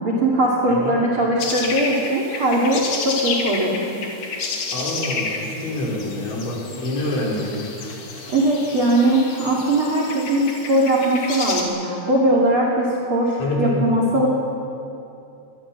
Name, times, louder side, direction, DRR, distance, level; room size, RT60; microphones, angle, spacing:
voice 1, 0.0-3.9 8.3-14.3, right 1 dB, 35° right, -1 dB, 2.6 m, -20 dB
sound 1, 1.4-11.6, left 4 dB, 50° left, 3.6 m, -30 dB
voice 2, 4.7-7.7 13.4-13.9, left 1 dB, 80° left, -3 dB, 7.0 m, -26 dB
22.5 x 21.0 x 7.5 m, 2.7 s
omnidirectional pair, 5.2 m